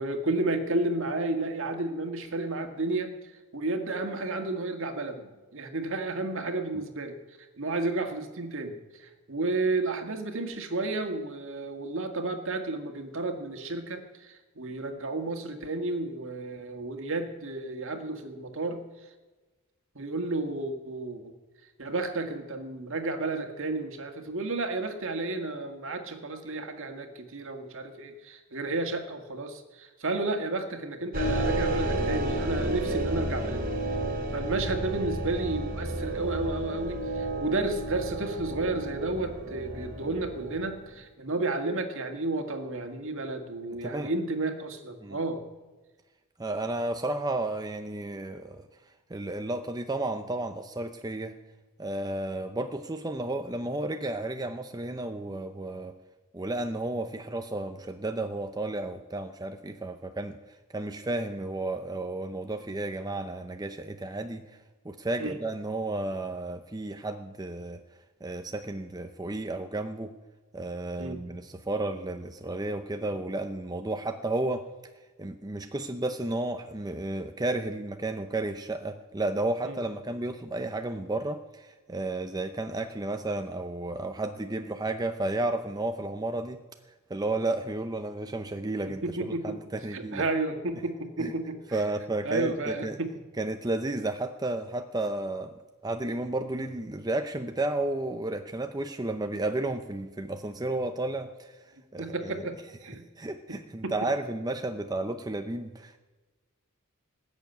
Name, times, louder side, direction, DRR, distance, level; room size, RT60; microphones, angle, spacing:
voice 1, 0.0-3.1 3.5-7.2 7.6-18.8 20.0-21.3 21.8-33.6 34.3-45.4 65.2-65.4 71.0-71.2 79.7-79.8 88.9-89.6 89.9-91.8 92.2-93.1 102.0-103.1 103.5-104.1, right 2 dB, 60° right, 6 dB, 1.8 m, -32 dB
sound 1, 31.1-40.9, right 1 dB, 40° right, 2.5 m, -31 dB
voice 2, 43.7-44.1 45.0-45.2 46.4-48.7 49.1-51.3 51.8-55.9 56.3-60.4 60.7-64.4 64.8-67.8 68.2-70.1 70.5-74.6 75.2-86.6 87.1-90.3 91.2-91.3 91.7-93.0 93.4-95.5 95.8-101.6 101.9-102.4 103.2-106.0, right 2 dB, 15° right, 6 dB, 0.6 m, -32 dB
19.5 x 7.1 x 9.2 m, 1.2 s
head